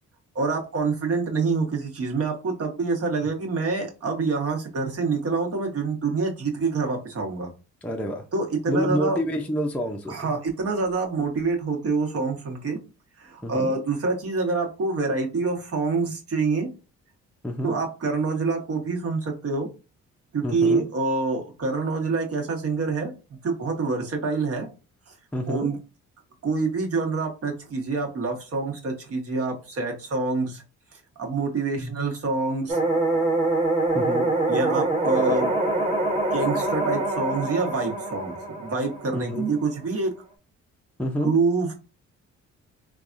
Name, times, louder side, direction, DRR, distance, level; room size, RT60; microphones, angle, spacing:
voice 1, 0.3-7.5 8.3-9.2 10.1-12.8 13.2-16.7 17.6-19.7 20.3-23.1 23.4-24.7 25.1-25.2 25.5-25.8 26.4-30.6 30.9-32.8 34.5-35.5 36.3-40.1 41.2-41.8, right 4 dB, 50° right, 1 dB, 1.2 m, -26 dB
voice 2, 7.8-8.2 8.7-10.4 13.4-13.7 17.4-17.8 20.4-20.9 25.3-25.7 31.8-32.0 33.9-34.3 39.1-39.5 41.0-41.3, equal, 5° left, 2 dB, 0.5 m, -28 dB
sound 1, 32.7-39.7, right 2 dB, 20° right, 0.9 m, -25 dB
3.3 x 2.3 x 2.5 m, 0.30 s
cardioid pair, 90°, 30 cm